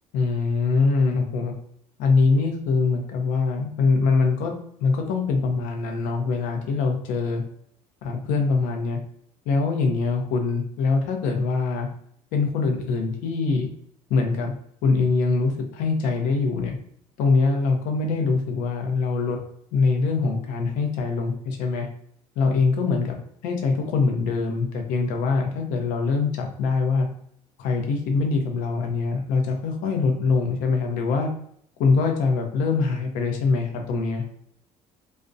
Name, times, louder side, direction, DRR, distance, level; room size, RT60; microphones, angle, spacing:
voice 1, 0.1-1.5 2.0-4.5 4.8-7.4 8.0-9.0 9.5-11.9 12.3-13.7 14.1-14.5 14.8-16.8 17.2-19.4 19.7-21.9 22.4-27.1 27.6-31.3 31.8-34.2, left 4 dB, 85° left, 3 dB, 0.6 m, -23 dB
2.4 x 2.1 x 2.5 m, 0.68 s
cardioid pair, 165°, 13 cm